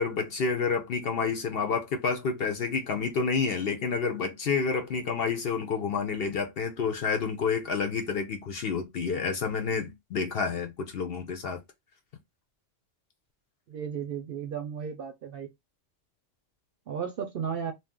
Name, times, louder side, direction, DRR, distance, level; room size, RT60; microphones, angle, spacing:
voice 1, 0.0-11.6, left 5 dB, 60° left, 0.7 m, -29 dB
voice 2, 13.7-15.5 16.9-17.7, right 7 dB, 60° right, 0.6 m, -34 dB
2.6 x 2.3 x 3.6 m
omnidirectional pair, 1.3 m